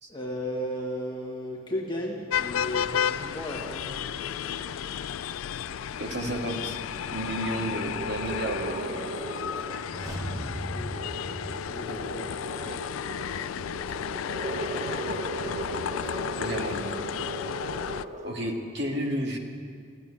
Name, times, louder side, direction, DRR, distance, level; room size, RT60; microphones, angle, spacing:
voice 1, 0.1-3.9 9.5-9.7 10.7-12.4, equal, 25° left, -2 dB, 1.7 m, -35 dB
sound 1, 1.0-18.3, right 2 dB, 35° right, 1.2 m, -39 dB
sound 2, 2.3-18.0, left 8 dB, 85° left, 0.4 m, -33 dB
voice 2, 6.0-6.8 7.1-9.0 12.7-12.8 16.4-16.9 18.2-19.4, right 1 dB, 60° right, 1 dB, 1.8 m, -32 dB
sound 3, 9.7-12.6 12.8-12.9, equal, 20° right, 1.9 m, -38 dB
15.5 x 9.0 x 10.0 m, 2.2 s
head